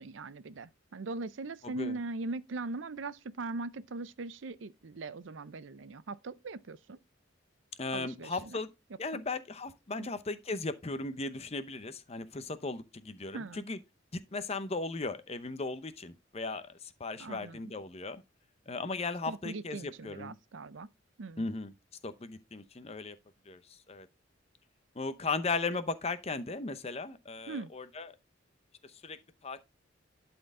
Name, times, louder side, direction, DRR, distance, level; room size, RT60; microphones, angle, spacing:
voice 1, 0.0-7.0 7.9-8.6 9.1-9.2 10.0-10.1 13.3-13.6 17.2-17.6 19.3-20.9 21.2-21.5 27.5-27.7, right 3 dB, 75° right, 0.6 m, -40 dB
voice 2, 1.6-2.0 7.8-8.7 9.0-13.8 14.1-18.2 18.7-20.3 21.4-21.7 22.0-23.2 23.5-24.1 24.9-28.1 28.8-29.6, left 3 dB, 35° left, 0.7 m, -37 dB
11.5 x 4.4 x 3.7 m
head